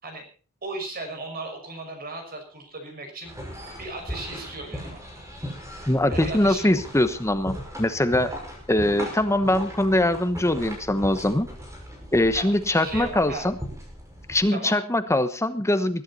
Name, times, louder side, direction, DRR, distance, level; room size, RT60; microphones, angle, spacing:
voice 1, 0.6-3.3 3.8-5.0 6.1-6.7 12.3-12.4 12.7-13.5 14.5-14.8, right 2 dB, 45° right, 4 dB, 6.1 m, -36 dB
sound 1, 3.2-14.4, equal, 15° right, 5.9 m, -38 dB
voice 2, 5.9-8.3 8.7-11.5 12.1-13.6 14.3-16.0, left 1 dB, 15° left, 10 dB, 1.1 m, -22 dB
21.5 x 11.5 x 4.2 m, 0.38 s
head